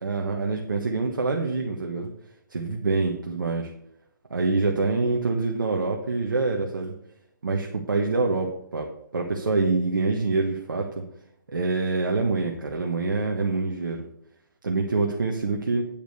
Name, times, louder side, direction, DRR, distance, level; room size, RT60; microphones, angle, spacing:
voice 1, 0.0-2.1 2.5-3.7 4.3-6.9 7.4-8.9 9.1-11.0 11.5-14.0 14.6-15.9, right 3 dB, 75° right, 1 dB, 1.4 m, -25 dB
8.8 x 5.2 x 6.3 m, 0.74 s
figure-of-eight pair, 145°, 11 cm